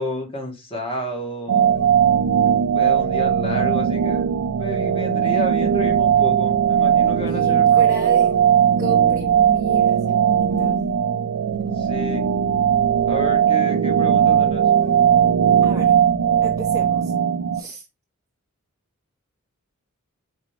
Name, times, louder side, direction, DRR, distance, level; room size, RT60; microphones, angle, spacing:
voice 1, 0.0-1.8 2.4-4.3 4.6-8.0 11.7-12.3 13.1-14.6, left 1 dB, 25° left, 1.4 m, -31 dB
sound 1, 1.5-17.6, right 8 dB, 70° right, 0.4 m, -18 dB
voice 2, 7.3-8.3 8.8-10.8 15.6-15.9 16.4-17.1 17.5-17.9, right 2 dB, 15° right, 0.5 m, -34 dB
4.8 x 3.4 x 3.2 m
head